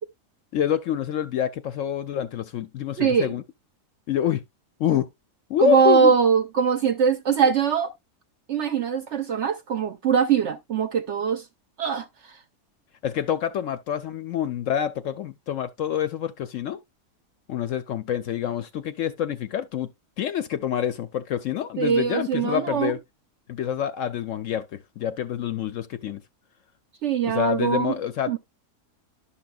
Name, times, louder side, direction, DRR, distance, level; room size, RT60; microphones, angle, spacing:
voice 1, 0.5-3.4 4.1-4.4 4.8-5.1 5.5-6.1 13.0-16.8 17.5-19.9 20.2-23.0 23.5-26.2 27.2-28.4, left 10 dB, 65° left, 0.8 m, -27 dB
voice 2, 3.0-3.3 5.6-7.9 8.5-11.4 11.8-12.0 21.8-22.9 27.0-27.9 28.3-28.4, right 6 dB, 65° right, 0.8 m, -22 dB
11.5 x 5.9 x 2.3 m
omnidirectional pair, 1.7 m